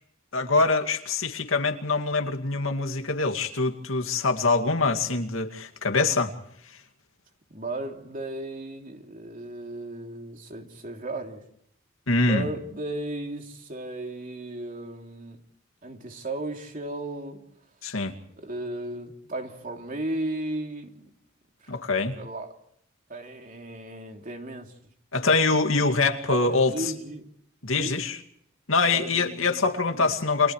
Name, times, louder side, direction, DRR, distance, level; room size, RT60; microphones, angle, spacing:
voice 1, 0.3-6.3 6.7-6.8 12.1-12.5 17.8-18.1 21.7-22.1 25.1-26.7 27.6-28.2 28.7-30.5, left 3 dB, 90° left, 2.3 m, -24 dB
voice 2, 7.5-11.4 12.2-15.4 15.8-17.4 18.4-21.1 21.6-21.8 22.2-22.5 23.1-24.7 26.3-27.3 27.8-28.0 28.9-29.6 29.9-30.1, right 1 dB, 40° right, 3.0 m, -35 dB
30.0 x 27.0 x 3.2 m
head